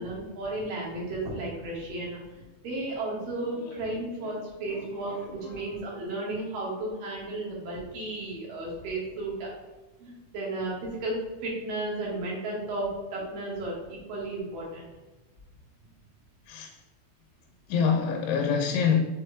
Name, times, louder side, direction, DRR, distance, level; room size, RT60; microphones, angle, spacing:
voice 1, 0.0-2.2 2.6-9.5 10.0-11.2 11.4-13.7 14.1-14.9, right 2 dB, 55° right, 3.1 m, -33 dB
voice 2, 4.7-5.6 16.5-16.8 17.7-19.0, left 6 dB, 85° left, 3.1 m, -27 dB
7.0 x 4.8 x 3.4 m
omnidirectional pair, 5.3 m